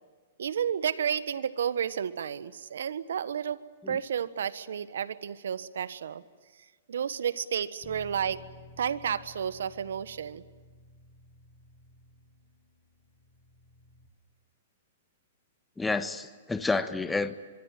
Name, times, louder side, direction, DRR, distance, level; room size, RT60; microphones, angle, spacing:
voice 1, 0.4-3.6 3.9-6.2 6.9-8.4 8.8-10.4, right 8 dB, 75° right, 15 dB, 1.4 m, -31 dB
Bass guitar, 7.8-14.1, left 2 dB, 35° left, 7.4 m, -54 dB
voice 2, 15.8-17.4, left 3 dB, 10° left, 11 dB, 1.4 m, -29 dB
24.5 x 23.5 x 9.3 m, 1.5 s
hypercardioid pair, 120°, 0 cm